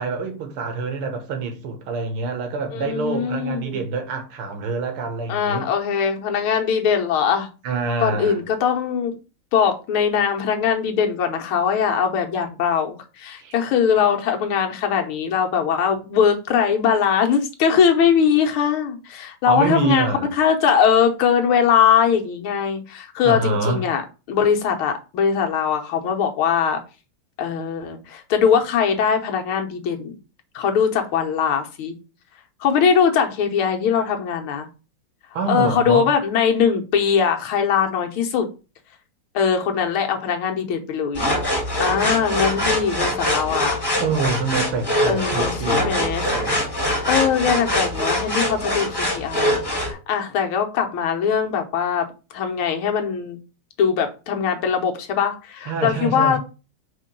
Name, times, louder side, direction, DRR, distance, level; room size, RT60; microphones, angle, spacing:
voice 1, 0.0-5.7 7.6-8.4 13.4-13.5 19.5-20.3 23.2-23.9 35.3-36.1 44.0-46.6 55.7-56.4, right 4 dB, 85° right, 2.1 m, -26 dB
voice 2, 2.7-3.9 5.3-7.5 8.0-9.1 9.5-20.1 20.4-24.0 24.3-26.8 27.4-30.2 30.6-32.0 32.6-34.7 35.5-38.5 39.3-41.2 41.8-43.8 45.1-46.4 47.1-52.1 52.3-53.4 53.8-56.4, left 7 dB, 80° left, 1.9 m, -21 dB
sound 1, 41.1-49.9, left 1 dB, 10° left, 1.8 m, -23 dB
4.9 x 3.8 x 5.2 m
omnidirectional pair, 2.3 m